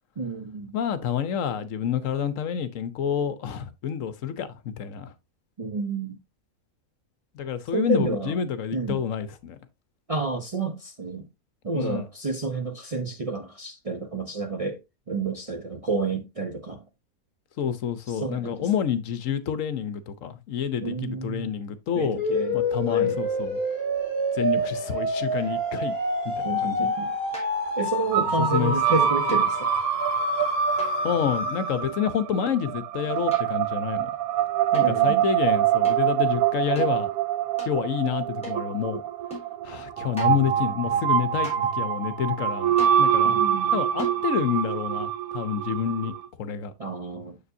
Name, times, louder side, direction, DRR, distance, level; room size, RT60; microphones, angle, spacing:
voice 1, 0.2-0.7 5.6-6.2 7.7-8.3 8.7-9.0 10.1-11.3 11.6-14.8 15.1-16.8 18.1-18.7 20.8-21.5 21.9-22.6 22.9-23.2 26.4-27.1 27.8-29.7 34.8-35.2 43.2-43.8 46.8-47.4, right 4 dB, 40° right, 0.5 m, -30 dB
voice 2, 0.7-5.1 7.3-9.6 11.7-12.1 17.6-22.2 22.5-23.6 24.3-26.0 26.2-26.9 28.4-28.7 31.0-34.1 34.7-37.1 37.6-39.0 39.6-43.4 43.7-46.7, left 8 dB, 65° left, 1.1 m, -28 dB
sound 1, 22.2-32.0, left 1 dB, 40° left, 2.5 m, -27 dB
sound 2, 25.4-25.8 27.3-27.8 29.3-29.6 30.8-31.3 33.0-33.7 34.7-34.9 35.8-36.1 36.7-36.9 37.6-37.8 38.4-38.7 39.3-39.5 40.2-40.5 41.4-41.8 42.8-43.1 44.0-44.3, left 2 dB, 5° left, 3.3 m, -41 dB
sound 3, 28.1-46.3, right 10 dB, 75° right, 1.0 m, -25 dB
6.9 x 6.8 x 2.6 m
omnidirectional pair, 1.5 m